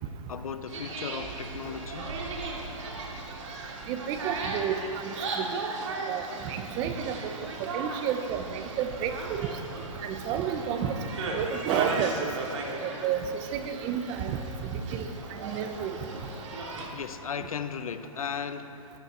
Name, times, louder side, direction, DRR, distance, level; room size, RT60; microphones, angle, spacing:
voice 1, 0.3-2.2 16.9-18.8, left 7 dB, 85° left, 11 dB, 0.8 m, -36 dB
sound 1, 0.7-16.9, right 3 dB, 60° right, 3.0 m, -37 dB
voice 2, 3.9-5.6 6.1-7.3 7.6-9.5 10.0-11.0 11.3-12.2 12.8-15.1 15.4-16.0, right 8 dB, 25° right, 8 dB, 0.9 m, -31 dB
18.0 x 14.0 x 4.4 m, 2.8 s
hypercardioid pair, 150°, 18 cm